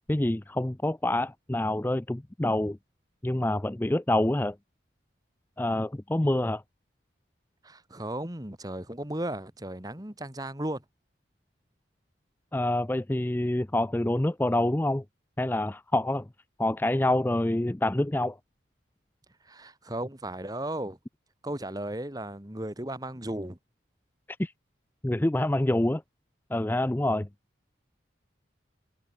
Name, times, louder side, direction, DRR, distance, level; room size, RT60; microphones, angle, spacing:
voice 1, 0.1-2.8 3.2-4.6 5.6-6.6 12.5-15.0 15.4-16.3 16.6-18.4 24.4-24.5 25.0-26.0 26.5-27.3, left 1 dB, 10° left, 0.4 m, -26 dB
voice 2, 7.6-10.8 19.4-21.0 21.4-23.6, right 1 dB, 20° right, 1.8 m, -35 dB
head